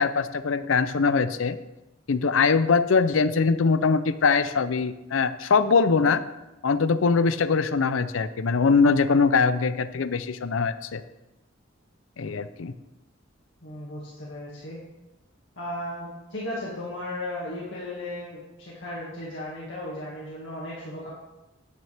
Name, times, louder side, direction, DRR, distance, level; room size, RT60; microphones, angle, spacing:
voice 1, 0.0-1.6 2.1-6.2 6.6-11.0 12.2-12.7, left 4 dB, 80° left, 13 dB, 0.6 m, -22 dB
voice 2, 13.6-14.8 15.6-21.1, left 1 dB, 65° left, -6 dB, 2.1 m, -35 dB
9.5 x 9.1 x 3.5 m, 0.99 s
head